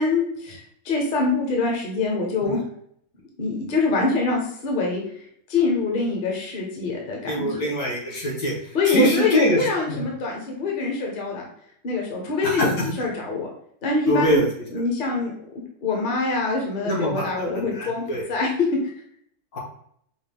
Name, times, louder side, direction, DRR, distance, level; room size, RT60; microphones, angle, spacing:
voice 1, 0.0-2.6 3.4-5.0 5.5-7.6 8.7-11.5 11.8-13.5 13.8-14.4 14.7-15.3 15.8-18.8, left 3 dB, 40° left, -1 dB, 0.9 m, -24 dB
voice 2, 7.3-8.6 8.9-10.0 12.4-12.7 14.1-14.5 16.8-18.3 19.5-19.6, equal, 70° left, -3 dB, 1.6 m, -24 dB
5.2 x 2.2 x 3.5 m, 0.67 s
omnidirectional pair, 1.6 m